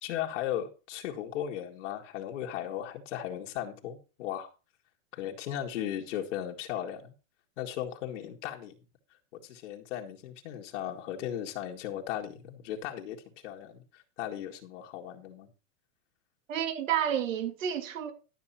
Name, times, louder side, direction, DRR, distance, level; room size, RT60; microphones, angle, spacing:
voice 1, 0.0-4.5 5.1-7.1 7.6-8.7 9.3-13.2 13.4-15.5, left 11 dB, 60° left, 2.1 m, -36 dB
voice 2, 16.5-18.1, right 9 dB, 75° right, 2.5 m, -30 dB
12.0 x 6.9 x 4.3 m
supercardioid pair, 165°, 40 cm